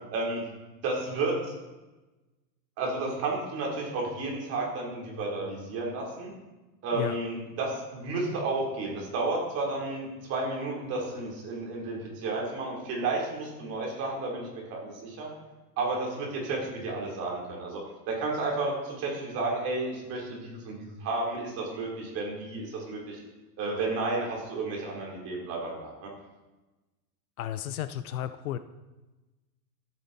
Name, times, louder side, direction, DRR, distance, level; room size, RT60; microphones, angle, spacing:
voice 1, 0.8-1.3 2.8-6.3 6.8-15.3 15.8-17.8 18.1-23.2 23.6-26.1, right 3 dB, 30° right, -2 dB, 3.6 m, -32 dB
voice 2, 27.4-28.6, left 11 dB, 60° left, 12 dB, 0.7 m, -33 dB
14.0 x 8.7 x 4.1 m, 1.1 s
supercardioid pair, 160°, 48 cm